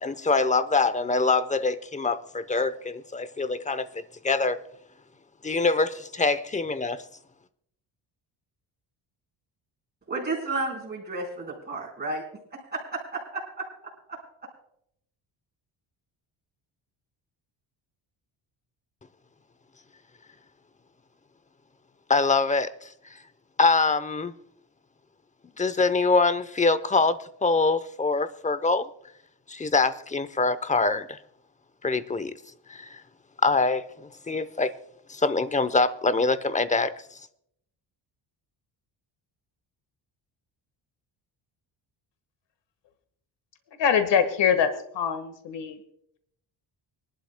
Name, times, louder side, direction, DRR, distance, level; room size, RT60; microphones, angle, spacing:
voice 1, 0.0-4.6 5.4-7.0 22.1-23.2 23.6-24.3 25.6-28.9 29.5-31.2 31.8-32.4 32.7-33.0 33.4-34.7 35.1-37.2, left 3 dB, 15° left, 0.7 m, -24 dB
voice 2, 10.1-12.2 12.5-14.2, right 3 dB, 20° right, 4.5 m, -33 dB
voice 3, 43.8-45.8, left 7 dB, 60° left, 1.6 m, -24 dB
25.0 x 11.5 x 2.2 m
cardioid pair, 100°, 47 cm